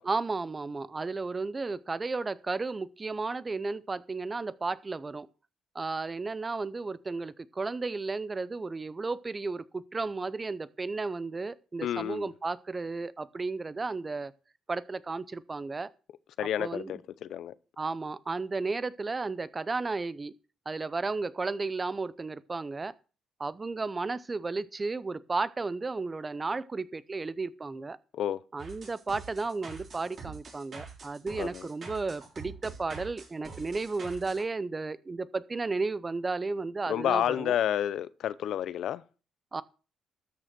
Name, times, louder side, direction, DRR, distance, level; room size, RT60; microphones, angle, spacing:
voice 1, 0.0-5.3 5.7-14.3 14.7-15.9 16.4-16.9 17.8-20.3 20.7-22.9 23.4-28.0 28.5-37.5 39.5-39.6, right 3 dB, 25° right, 0.7 m, -33 dB
voice 2, 11.8-12.3 16.4-17.5 28.1-28.4 31.4-31.7 36.9-39.0, left 10 dB, 75° left, 0.6 m, -30 dB
sound 1, 28.6-34.4, right 5 dB, 50° right, 4.0 m, -45 dB
13.0 x 6.4 x 5.9 m
cardioid pair, 90°, 0 cm